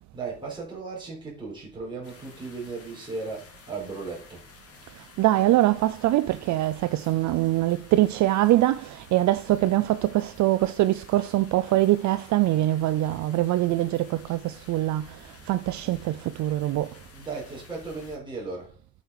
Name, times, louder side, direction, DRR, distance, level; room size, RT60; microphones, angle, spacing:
voice 1, 0.0-4.5 17.1-18.8, right 4 dB, 15° right, 4.2 m, -36 dB
sound 1, 2.0-18.2, left 4 dB, 45° left, 2.5 m, -51 dB
voice 2, 5.2-16.9, right 15 dB, 60° right, 0.4 m, -23 dB
8.3 x 6.5 x 4.8 m
cardioid pair, 155°, 33 cm